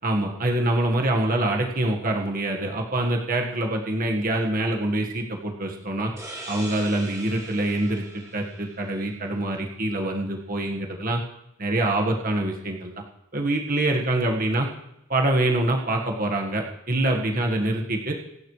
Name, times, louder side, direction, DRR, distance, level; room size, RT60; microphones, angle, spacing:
voice 1, 0.0-6.1 6.5-11.2 11.6-13.0 13.3-14.7 15.1-18.1, right 1 dB, 40° right, 1 dB, 1.6 m, -25 dB
sound 1, 6.2-9.6, right 1 dB, 15° right, 3.5 m, -41 dB
26.5 x 12.0 x 3.3 m, 0.88 s
head